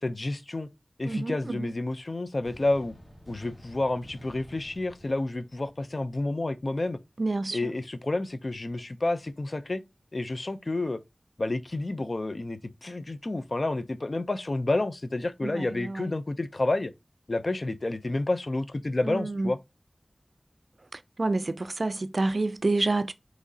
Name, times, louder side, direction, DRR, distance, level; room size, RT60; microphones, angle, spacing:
voice 1, 0.0-0.7 1.0-2.9 3.3-7.0 7.5-9.8 10.1-11.0 11.4-16.9 17.3-19.6, left 2 dB, 60° left, 0.5 m, -30 dB
voice 2, 1.1-1.7 7.2-7.6 15.4-16.1 19.1-19.5 21.2-23.1, right 2 dB, 70° right, 0.3 m, -28 dB
sound 1, 2.4-6.4, equal, 40° left, 1.7 m, -51 dB
6.0 x 3.1 x 2.7 m
wide cardioid pair, 50°, 0 cm